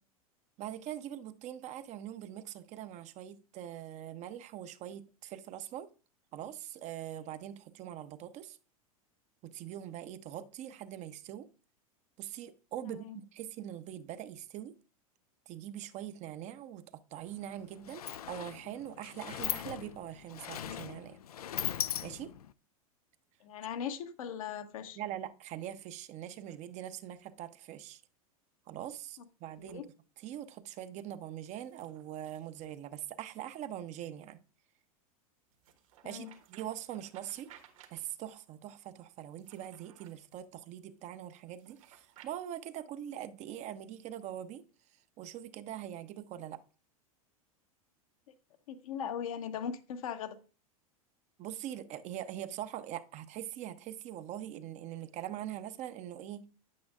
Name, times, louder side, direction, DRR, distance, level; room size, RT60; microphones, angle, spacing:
voice 1, 0.6-5.9 6.3-8.6 9.4-11.5 12.2-14.7 15.5-21.2 22.0-22.3 25.0-28.0 28.7-29.8 30.2-34.4 36.0-37.5 37.9-44.6 45.2-46.6 51.4-56.5, right 11 dB, 40° right, 0.7 m, -43 dB
voice 2, 12.8-13.2 23.4-25.0 29.6-29.9 36.0-36.3 48.7-50.4, left 8 dB, 65° left, 1.0 m, -39 dB
Sliding door, 17.2-17.3 17.6-22.5, left 10 dB, 80° left, 0.4 m, -39 dB
Overhead Projector Putting Transparency On, 26.2-27.2 29.5-29.8 31.4-33.4 35.5-38.4 39.2-40.5 41.5-42.3, right 10 dB, 65° right, 1.5 m, -61 dB
9.4 x 8.5 x 2.4 m
hypercardioid pair, 90°, 19 cm